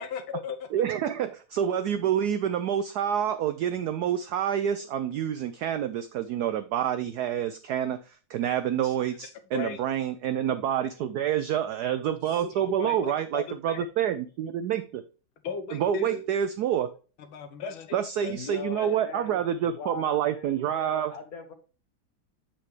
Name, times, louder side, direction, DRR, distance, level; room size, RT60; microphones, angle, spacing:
voice 1, 0.0-0.7 8.8-9.2 9.5-9.8 12.3-13.9 15.4-16.3 17.2-19.0, left 6 dB, 75° left, 1.8 m, -37 dB
voice 2, 0.7-15.0 15.7-16.9 17.9-21.1, right 9 dB, 80° right, 0.9 m, -28 dB
voice 3, 18.3-21.5, left 5 dB, 50° left, 1.3 m, -41 dB
7.7 x 5.8 x 3.2 m
omnidirectional pair, 2.2 m